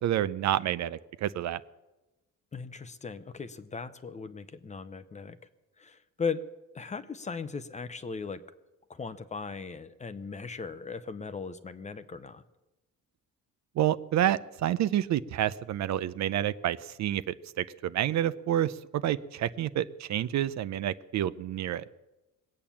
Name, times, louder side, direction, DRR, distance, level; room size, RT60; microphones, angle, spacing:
voice 1, 0.0-1.6 13.8-21.8, right 12 dB, 55° right, 15 dB, 0.5 m, -29 dB
voice 2, 2.5-5.4 5.8-6.4 6.7-8.4 8.9-12.4, left 5 dB, 20° left, 13 dB, 0.6 m, -38 dB
20.5 x 8.7 x 7.2 m, 1.0 s
cardioid pair, 155°, 33 cm